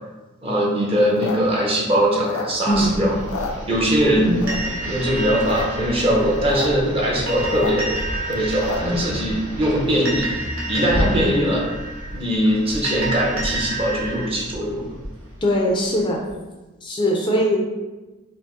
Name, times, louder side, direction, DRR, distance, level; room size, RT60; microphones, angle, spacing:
voice 1, 0.4-3.1 3.7-4.4 4.8-7.9 8.2-10.3 10.7-11.6 12.1-14.9, equal, 30° right, -3 dB, 0.8 m, -21 dB
sound 1, 1.0-2.9 3.2-4.1 4.4-4.9 5.3-5.7 5.9-6.0 6.2-6.7 7.0-9.0, left 4 dB, 85° left, 0.5 m, -30 dB
sound 2, 2.7-16.3, equal, 65° right, 1.0 m, -32 dB
sound 3, 4.5-14.3, right 2 dB, 80° right, 1.4 m, -31 dB
voice 2, 11.0-11.3 15.4-16.2 16.8-17.6, equal, 25° left, -1 dB, 0.4 m, -21 dB
4.8 x 2.1 x 3.7 m, 1.2 s
head